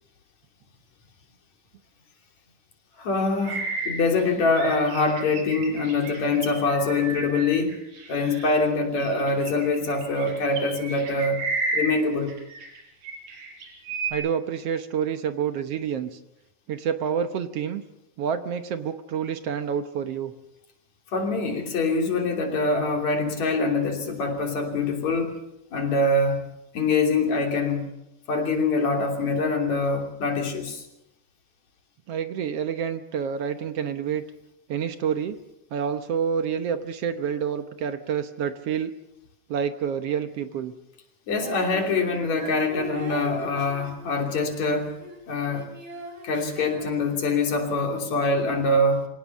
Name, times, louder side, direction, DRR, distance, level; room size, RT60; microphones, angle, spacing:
voice 1, 3.0-7.8 8.1-11.4 11.7-12.3 21.1-25.4 25.7-26.4 26.7-27.9 28.3-30.8 41.3-44.9 45.3-45.7 46.2-49.1, left 3 dB, 65° left, 3 dB, 4.4 m, -24 dB
sound 1, 3.4-8.6 9.0-12.8 13.0-14.1, right 3 dB, 90° right, 6.8 m, -33 dB
voice 2, 14.1-16.2 16.7-17.8 18.2-20.3 32.1-34.2 34.7-35.4 35.7-38.9 39.5-40.7, right 7 dB, 65° right, 9 dB, 1.8 m, -28 dB
Female singing, 41.4-45.2 45.5-47.6, equal, 40° right, 4.9 m, -41 dB
25.5 x 17.5 x 7.1 m, 0.87 s
omnidirectional pair, 3.4 m